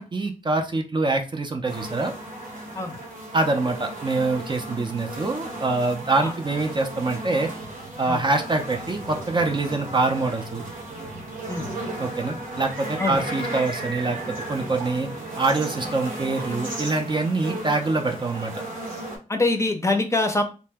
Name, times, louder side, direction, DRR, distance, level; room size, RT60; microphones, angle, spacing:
voice 1, 0.0-2.1 3.3-7.5 8.0-10.6 12.0-14.2 14.5-15.1 15.4-18.6, right 3 dB, 35° right, 4 dB, 0.5 m, -25 dB
sound 1, 1.7-19.2, right 1 dB, 90° right, 1.1 m, -35 dB
voice 2, 19.3-20.4, left 2 dB, 20° left, 5 dB, 0.5 m, -24 dB
2.8 x 2.1 x 3.3 m, 0.32 s
wide cardioid pair, 80°, 14 cm